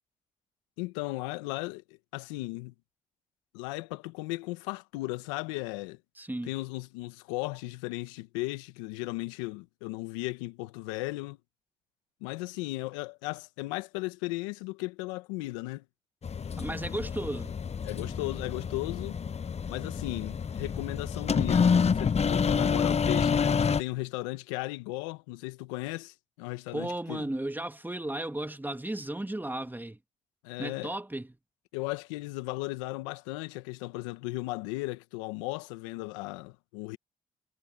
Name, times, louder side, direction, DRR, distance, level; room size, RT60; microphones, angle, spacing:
voice 1, 0.8-2.7 3.5-6.0 6.4-11.4 12.2-15.8 17.8-19.2 19.7-27.2 30.4-30.9 31.7-37.0, left 21 dB, 90° left, 1.5 m, -36 dB
voice 2, 6.2-6.5 16.6-17.5 26.7-30.0 30.6-31.3, right 1 dB, 10° right, 2.2 m, -34 dB
sound 1, 16.2-23.8, left 6 dB, 45° left, 1.1 m, -28 dB
hypercardioid pair, 45°, 16 cm